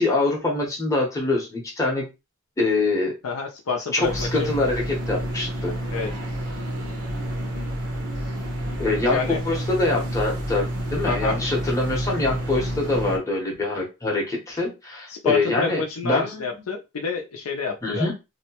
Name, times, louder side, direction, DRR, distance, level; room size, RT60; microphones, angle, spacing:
voice 1, 0.0-2.1 2.6-3.1 3.9-5.7 8.8-16.6 17.8-18.1, left 2 dB, 15° left, -2 dB, 0.7 m, -24 dB
voice 2, 3.2-4.5 5.9-6.1 9.1-9.4 11.1-11.4 15.1-18.1, left 5 dB, 75° left, 2 dB, 0.5 m, -28 dB
sound 1, 4.0-13.2, right 1 dB, 80° right, 0.8 m, -29 dB
2.7 x 2.1 x 2.8 m, 0.25 s
head